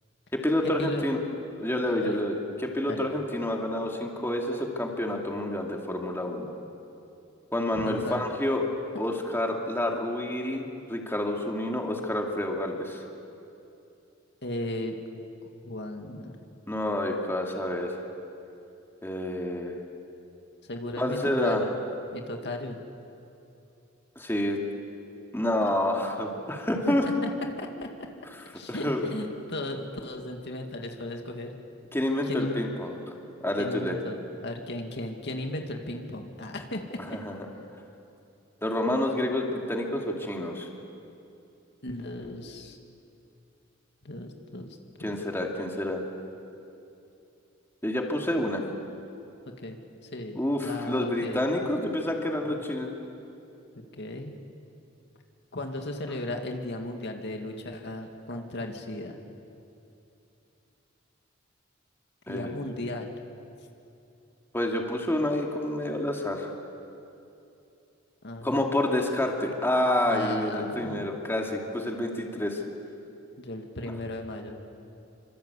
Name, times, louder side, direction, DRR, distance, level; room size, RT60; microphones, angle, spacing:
voice 1, 0.3-1.2 1.6-6.5 7.5-8.6 9.0-13.0 16.7-18.0 19.0-19.8 21.0-21.6 24.2-24.6 25.3-27.0 28.7-29.0 31.9-33.0 33.4-34.0 37.2-37.3 38.6-40.7 45.0-46.0 47.8-48.7 50.4-52.9 62.3-62.5 64.5-66.5 68.4-72.6, left 1 dB, 10° left, 1 dB, 2.5 m, -28 dB
voice 2, 7.8-8.2 14.4-14.9 15.6-16.3 20.7-21.7 22.1-22.8 26.9-27.3 27.6-27.9 28.5-31.5 32.3-32.6 33.6-37.2 41.8-42.8 44.0-45.2 48.4-48.5 49.6-51.5 52.3-52.6 53.9-54.3 55.5-59.1 62.3-63.1 68.2-68.7 70.1-71.1 73.4-74.6, left 1 dB, 55° left, 3 dB, 2.2 m, -36 dB
27.5 x 25.5 x 8.3 m, 2.8 s
head